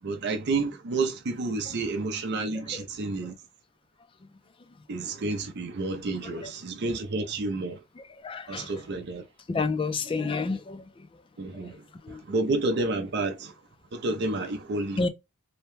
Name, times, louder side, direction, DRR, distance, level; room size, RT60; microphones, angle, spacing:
voice 1, 0.0-3.4 4.9-7.8 8.5-9.2 10.2-10.3 11.4-11.8 12.1-13.5 13.9-15.0, right 3 dB, 55° right, 0.5 m, -30 dB
voice 2, 8.2-8.7 9.5-10.8 12.0-12.2 15.0-15.1, left 4 dB, 25° left, 0.3 m, -29 dB
2.8 x 2.2 x 3.0 m
head